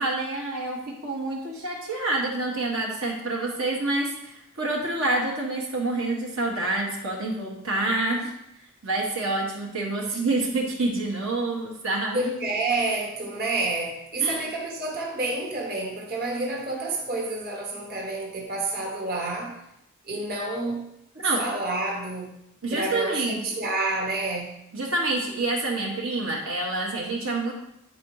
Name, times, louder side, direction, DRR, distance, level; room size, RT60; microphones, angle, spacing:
voice 1, 0.0-8.3 8.8-12.3 14.2-14.4 21.1-21.4 22.6-23.4 24.7-27.5, right 2 dB, 65° right, -2 dB, 1.4 m, -27 dB
voice 2, 12.1-19.6 20.1-20.9 21.4-22.3 22.7-24.6, right 2 dB, 45° right, -1 dB, 1.6 m, -29 dB
9.3 x 4.3 x 4.8 m, 0.81 s
head